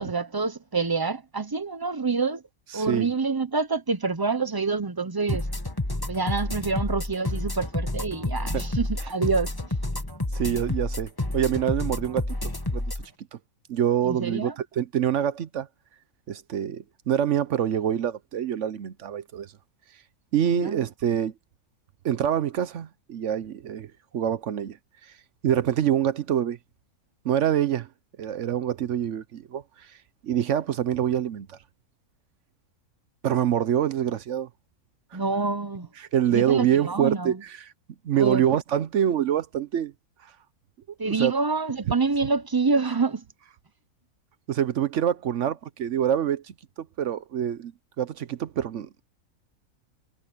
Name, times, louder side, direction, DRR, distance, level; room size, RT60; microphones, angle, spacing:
voice 1, 0.0-2.4 2.7-5.5 6.1-9.5 14.0-14.5 20.5-20.8 35.1-35.9 36.3-37.4 38.1-38.4 41.0-43.2, right 4 dB, 35° right, 0.3 m, -27 dB
voice 2, 2.7-3.1 8.5-8.7 10.3-12.8 13.3-13.4 13.7-15.7 16.3-19.5 20.3-21.3 22.0-24.8 25.4-26.6 27.2-27.9 28.2-29.9 30.2-31.6 33.2-34.5 35.1-35.2 36.0-37.6 38.0-39.9 41.0-41.3 44.5-47.7 48.0-49.0, right 10 dB, 60° right, 1.0 m, -26 dB
sound 1, 5.3-13.0, left 2 dB, 15° left, 1.7 m, -29 dB
omnidirectional pair, 1.5 m